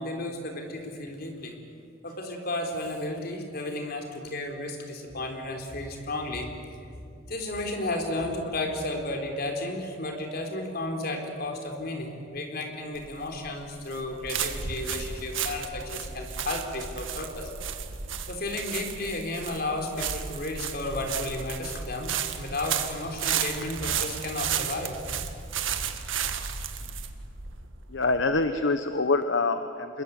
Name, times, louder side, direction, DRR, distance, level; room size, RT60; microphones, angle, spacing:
voice 1, 0.0-1.5 2.0-6.5 7.3-17.5 18.3-25.1 26.2-26.4, left 2 dB, 50° left, 3 dB, 4.0 m, -33 dB
sound 1, 13.0-28.5, right 8 dB, 80° right, 1.7 m, -33 dB
voice 2, 27.9-30.0, left 3 dB, 70° left, 9 dB, 1.0 m, -25 dB
26.5 x 22.0 x 8.4 m, 2.4 s
head